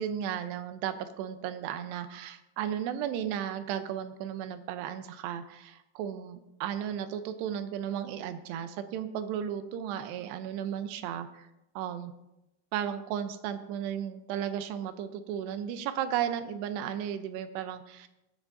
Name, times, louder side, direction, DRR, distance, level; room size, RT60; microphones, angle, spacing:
voice 1, 0.0-11.5 11.8-12.1 12.7-18.1, right 9 dB, 90° right, 9 dB, 3.0 m, -34 dB
24.0 x 9.7 x 2.7 m, 0.93 s
omnidirectional pair, 4.7 m